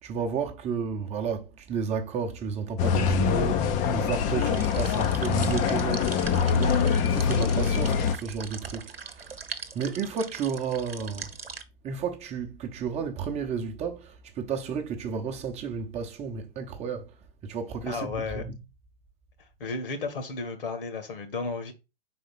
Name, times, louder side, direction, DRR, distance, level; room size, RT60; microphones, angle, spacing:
voice 1, 0.0-9.4 9.7-11.3 11.8-17.2 17.4-18.6, right 6 dB, 20° right, 0.9 m, -32 dB
sound 1, 2.8-8.2, left 6 dB, 25° left, 0.6 m, -24 dB
sound 2, 4.5-11.6, right 5 dB, 85° right, 0.9 m, -41 dB
voice 2, 17.8-18.5 19.6-21.7, left 4 dB, 65° left, 1.8 m, -33 dB
5.0 x 4.2 x 5.7 m
figure-of-eight pair, 110°, 29 cm